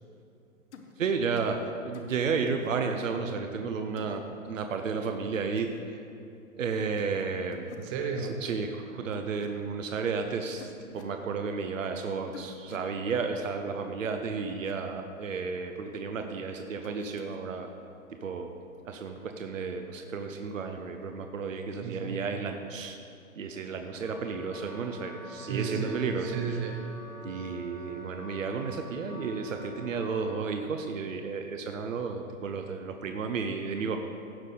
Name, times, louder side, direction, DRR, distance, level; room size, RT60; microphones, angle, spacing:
sound 1, 0.7-0.9 1.4-1.6 1.9-2.2 2.5-2.7 4.0-4.2 5.6-5.8 7.0-7.3 7.5-7.9 9.1-9.5 10.6-11.2 12.3-12.9 14.5-14.7 16.8-17.4, left 6 dB, 55° left, 1.2 m, -48 dB
voice 1, 1.0-6.0 6.6-7.7 8.4-17.7 18.1-18.5 18.9-23.0 23.4-26.3 27.2-34.0, right 5 dB, 70° right, 5 dB, 1.0 m, -32 dB
voice 2, 7.8-8.4 16.1-16.2 21.8-22.2 25.3-26.8, right 6 dB, 15° right, 4 dB, 0.4 m, -34 dB
Wind instrument woodwind instrument, 24.0-30.5, left 1 dB, 85° left, 1.6 m, -47 dB
16.0 x 6.6 x 3.9 m, 2.6 s
figure-of-eight pair, 120°, 41 cm